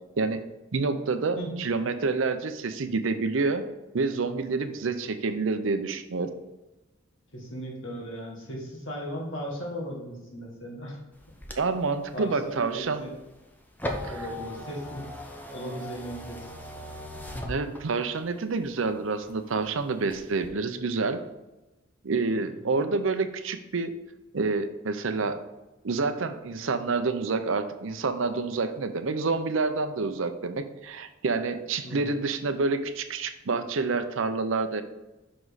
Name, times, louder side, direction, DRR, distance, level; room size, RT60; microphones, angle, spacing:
voice 1, 0.7-3.6 3.9-6.3 11.6-13.0 14.0-14.3 17.5-21.2 22.0-23.9 24.3-25.4 25.8-34.8, right 4 dB, 75° right, 9 dB, 0.6 m, -28 dB
voice 2, 7.3-11.0 11.5-11.6 12.1-13.1 14.1-15.0 15.5-16.5 31.8-32.2, equal, 75° left, -2 dB, 1.8 m, -37 dB
sound 1, 11.1-18.2 18.7-19.6 20.0-20.5, left 1 dB, 10° left, 0.7 m, -39 dB
6.0 x 5.0 x 4.0 m, 1.0 s
head